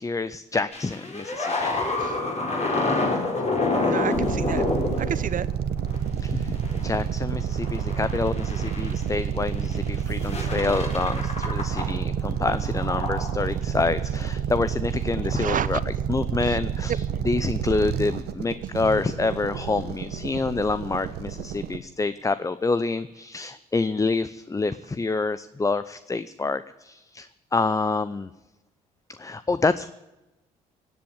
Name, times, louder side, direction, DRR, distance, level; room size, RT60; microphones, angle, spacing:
voice 1, 0.0-1.9 6.2-28.3 29.2-29.9, left 3 dB, 15° left, 15 dB, 0.6 m, -27 dB
sound 1, 0.7-6.0 6.6-6.9 7.3-9.0 9.6-9.9 10.2-12.0 12.3-13.4 15.1-15.3, left 2 dB, 35° left, 4.3 m, -28 dB
voice 2, 3.8-4.6 5.0-5.5 11.8-11.9 15.3-15.8, right 9 dB, 45° right, 17 dB, 0.8 m, -30 dB
sound 2, 4.1-21.8, right 8 dB, 65° right, 1.1 m, -29 dB
17.0 x 7.8 x 8.7 m, 1.0 s
hypercardioid pair, 55°, 19 cm